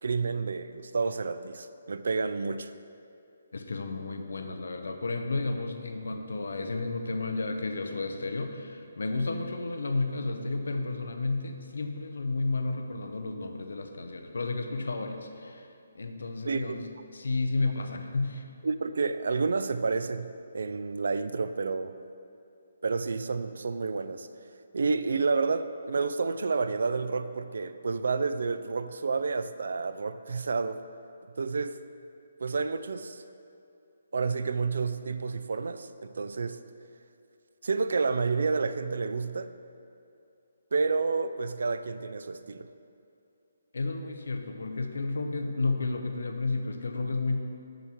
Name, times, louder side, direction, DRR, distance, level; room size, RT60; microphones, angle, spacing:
voice 1, 0.0-2.7 16.5-16.8 18.6-21.9 22.8-24.3 24.7-30.8 31.4-31.8 32.4-33.2 34.1-36.6 37.6-39.5 40.7-42.7, right 4 dB, 60° right, 12 dB, 0.3 m, -30 dB
voice 2, 3.5-15.7 15.9-18.4 43.7-47.4, left 3 dB, 85° left, 5 dB, 0.7 m, -32 dB
6.6 x 6.3 x 4.4 m, 2.6 s
hypercardioid pair, 175°, 0 cm